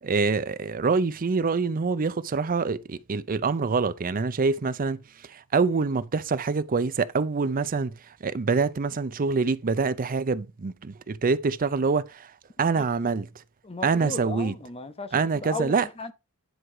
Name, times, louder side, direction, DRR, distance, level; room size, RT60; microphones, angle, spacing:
voice 1, 0.0-13.4 13.8-14.5 15.1-15.8, right 4 dB, 40° right, 0.5 m, -26 dB
voice 2, 13.6-16.1, left 3 dB, 25° left, 1.0 m, -36 dB
10.0 x 4.7 x 4.9 m
head